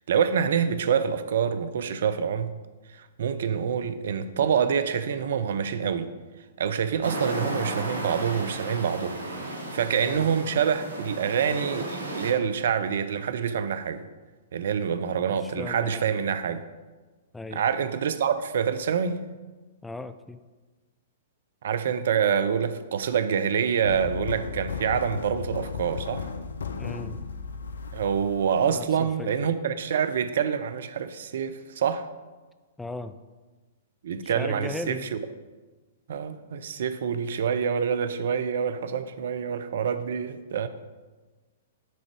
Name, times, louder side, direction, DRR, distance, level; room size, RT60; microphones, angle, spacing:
voice 1, 0.1-2.6 2.9-6.1 6.6-9.2 9.7-14.0 14.5-16.6 17.5-19.2 21.6-26.3 27.9-32.1 34.0-35.2 36.1-40.7, right 7 dB, 60° right, 12 dB, 0.5 m, -26 dB
sound 1, 7.0-12.3, right 1 dB, 75° right, 1.0 m, -34 dB
voice 2, 15.3-16.1 17.3-17.6 19.8-20.4 26.8-27.2 28.7-29.3 32.8-33.2 34.2-35.1, left 2 dB, 5° left, 10 dB, 0.3 m, -37 dB
sound 2, 23.8-29.0, left 5 dB, 70° left, 0.4 m, -35 dB
9.3 x 3.9 x 4.6 m, 1.3 s
figure-of-eight pair, 110°, 0 cm